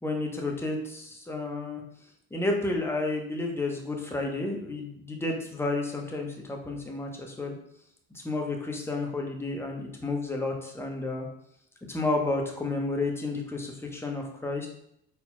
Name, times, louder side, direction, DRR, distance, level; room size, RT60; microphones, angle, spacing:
voice 1, 0.0-1.8 2.3-7.5 8.2-11.3 11.9-14.7, left 2 dB, 10° left, 1 dB, 1.0 m, -31 dB
4.2 x 4.1 x 2.3 m, 0.74 s
hypercardioid pair, 65°, 31 cm